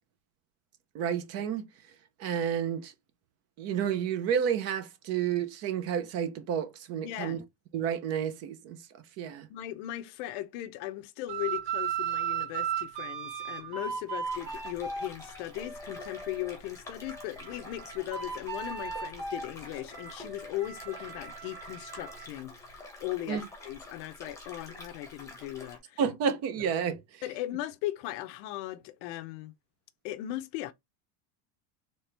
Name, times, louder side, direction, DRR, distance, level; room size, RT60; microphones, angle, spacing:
voice 1, 0.9-1.6 2.2-2.9 3.6-7.4 7.7-8.8 9.2-9.5 23.3-23.4 26.0-27.2, right 8 dB, 35° right, 0.6 m, -30 dB
voice 2, 7.0-7.4 9.5-26.0 27.2-29.5 30.0-30.7, left 14 dB, 60° left, 0.6 m, -38 dB
sound 1, 11.3-16.5 17.0-22.3, right 7 dB, 70° right, 2.4 m, -37 dB
sound 2, 14.2-25.8, left 2 dB, 5° left, 1.0 m, -48 dB
4.2 x 3.3 x 3.3 m
cardioid pair, 180°, 42 cm